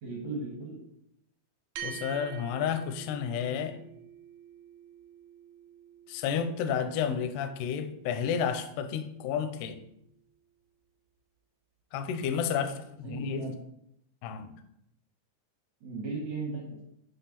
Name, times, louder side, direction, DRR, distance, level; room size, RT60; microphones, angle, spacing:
voice 1, 0.0-0.8 13.0-13.6 15.8-16.8, right 3 dB, 70° right, -2 dB, 1.7 m, -37 dB
voice 2, 1.8-3.8 6.1-9.8 11.9-13.5 14.2-14.6, left 7 dB, 85° left, 8 dB, 2.4 m, -31 dB
sound 1, 1.8-10.4, right 8 dB, 90° right, 2.0 m, -48 dB
9.4 x 3.3 x 5.8 m, 0.77 s
omnidirectional pair, 5.4 m